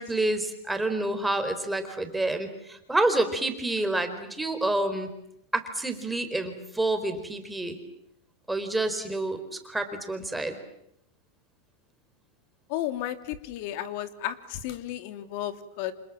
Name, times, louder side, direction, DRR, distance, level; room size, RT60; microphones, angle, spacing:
voice 1, 0.0-5.1 5.5-7.8 8.5-10.6, right 2 dB, 5° right, 6 dB, 4.6 m, -28 dB
voice 2, 12.7-15.9, left 12 dB, 60° left, 10 dB, 2.8 m, -33 dB
29.0 x 27.5 x 7.5 m, 0.78 s
supercardioid pair, 130°, 0 cm